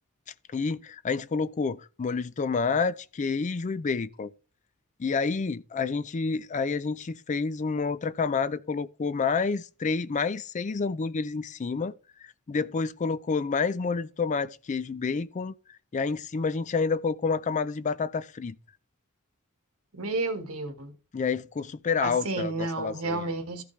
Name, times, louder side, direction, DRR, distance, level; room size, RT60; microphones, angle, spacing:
voice 1, 0.5-4.3 5.0-11.9 12.2-15.5 15.9-18.6 21.1-23.3, left 5 dB, 35° left, 0.4 m, -29 dB
voice 2, 19.9-20.9 22.0-23.6, right 3 dB, 80° right, 1.5 m, -31 dB
14.5 x 5.2 x 3.2 m
head